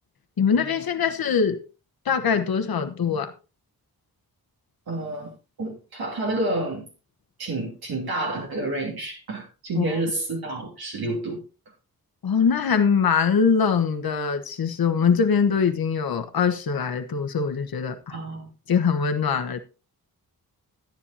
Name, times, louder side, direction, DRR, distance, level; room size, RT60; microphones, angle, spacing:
voice 1, 0.4-1.6 2.0-3.3 9.8-9.9 12.2-18.2 18.7-19.6, left 6 dB, 70° left, 1.2 m, -22 dB
voice 2, 4.9-6.9 7.4-11.4 18.1-18.5, right 2 dB, 75° right, 3.1 m, -29 dB
13.0 x 10.0 x 2.8 m
wide cardioid pair, 90°, 37 cm